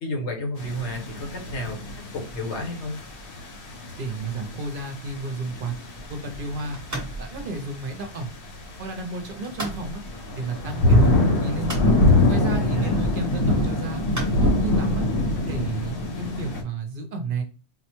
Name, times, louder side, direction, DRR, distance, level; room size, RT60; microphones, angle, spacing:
voice 1, 0.0-1.8 2.1-3.0 12.6-13.1, left 1 dB, 80° left, 2 dB, 1.3 m, -31 dB
sound 1, 0.6-16.6, left 1 dB, 55° left, 1.0 m, -25 dB
voice 2, 4.0-5.7 6.1-6.8 7.2-8.3 8.8-10.0 10.4-11.7 12.3-14.0 14.4-15.0 15.5-17.4, right 3 dB, 55° right, 5 dB, 0.7 m, -32 dB
sound 2, 6.0-15.9, right 2 dB, 15° right, 0.8 m, -40 dB
4.1 x 2.1 x 2.9 m, 0.37 s
omnidirectional pair, 1.2 m